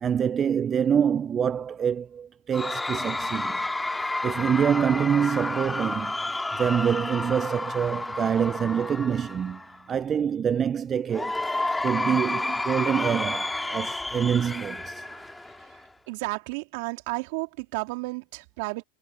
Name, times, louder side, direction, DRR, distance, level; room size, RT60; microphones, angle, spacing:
voice 1, 0.0-3.6 4.0-6.2 6.6-9.6 9.9-11.4 11.8-15.4, right 8 dB, 25° right, 0.3 m, -26 dB
Cheering / Crowd, 2.5-9.8 11.1-15.8, left 2 dB, 5° left, 2.5 m, -31 dB
voice 2, 16.1-18.8, right 26 dB, 60° right, 3.3 m, -32 dB
hypercardioid pair, 115°, 0 cm